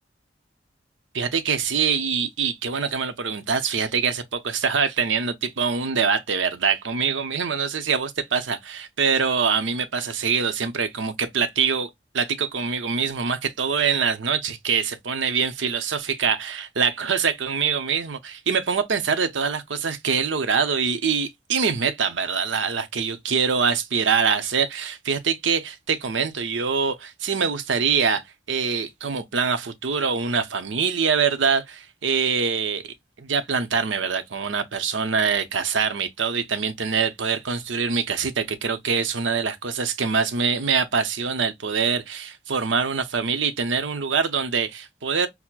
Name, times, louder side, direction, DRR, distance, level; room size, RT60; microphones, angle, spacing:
voice 1, 1.1-11.9 12.1-32.8 33.2-45.3, right 6 dB, 85° right, 0.7 m, -24 dB
5.9 x 2.1 x 2.3 m
head